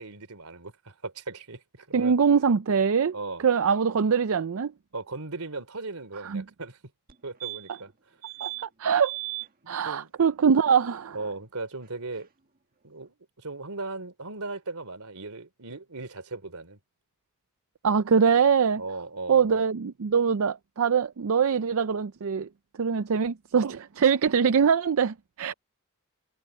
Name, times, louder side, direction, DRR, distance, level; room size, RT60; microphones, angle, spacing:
voice 1, 0.0-2.1 3.1-3.4 4.9-6.8 7.2-7.9 9.6-10.1 11.1-12.3 12.8-16.8 18.8-19.5, right 3 dB, 85° right, 3.2 m, -37 dB
voice 2, 1.9-3.2 3.4-4.7 6.2-6.4 8.4-8.5 8.8-9.2 9.7-11.2 17.8-18.8 19.3-22.5 22.8-25.5, right 6 dB, 65° right, 0.5 m, -23 dB
sound 1, 7.1-7.2 7.4-7.9 8.2-8.6 9.0-9.5 11.8-11.9 12.1-12.2, right 22 dB, 40° right, 1.5 m, -36 dB
head